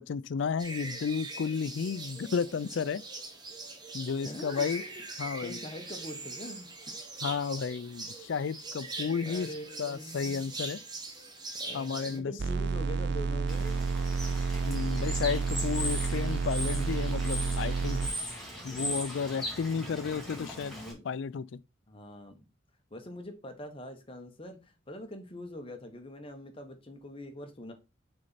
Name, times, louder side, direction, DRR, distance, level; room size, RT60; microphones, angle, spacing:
voice 1, 0.0-3.0 3.9-4.8 5.2-5.6 7.2-9.5 9.8-10.8 11.7-12.3 14.6-18.0 18.6-20.7 21.1-21.6, left 6 dB, 65° left, 0.4 m, -32 dB
sound 1, 0.6-12.2, right 2 dB, 20° right, 1.1 m, -42 dB
voice 2, 4.0-7.0 9.2-10.5 11.6-13.8 17.4-17.6 19.8-21.1 21.9-22.4 22.9-27.7, left 1 dB, 25° left, 1.1 m, -44 dB
sound 2, 12.4-18.1, right 4 dB, 55° right, 0.5 m, -30 dB
Bird / Water, 13.5-20.9, equal, ahead, 2.1 m, -39 dB
6.4 x 4.1 x 4.1 m
head